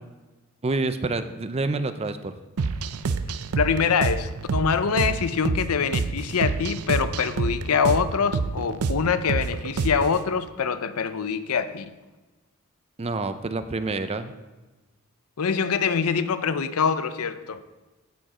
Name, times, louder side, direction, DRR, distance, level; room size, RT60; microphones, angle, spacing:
voice 1, 0.6-2.3 13.0-14.3, right 3 dB, 30° right, 0.5 m, -27 dB
sound 1, 2.6-10.2, right 4 dB, 90° right, 0.5 m, -28 dB
voice 2, 3.6-11.8 15.4-17.6, left 6 dB, 90° left, 0.6 m, -24 dB
15.0 x 5.1 x 4.9 m
head